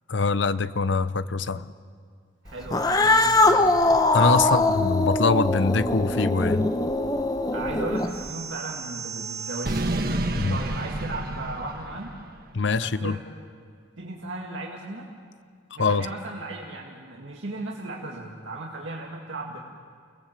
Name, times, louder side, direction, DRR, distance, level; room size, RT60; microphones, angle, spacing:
voice 1, 0.1-1.7 4.1-6.7 10.3-10.6 12.5-13.2 15.8-16.1, left 4 dB, 75° left, 14 dB, 0.7 m, -23 dB
voice 2, 2.4-3.8 4.4-4.6 7.5-10.1 10.5-12.1 12.8-13.2 14.0-15.1 15.8-19.6, right 2 dB, 85° right, -2 dB, 2.1 m, -36 dB
Cat, 2.6-8.3, left 2 dB, 20° left, 0.9 m, -22 dB
sound 1, 8.1-12.4, right 2 dB, 50° right, 1.4 m, -31 dB
28.5 x 18.5 x 7.5 m, 2.1 s
head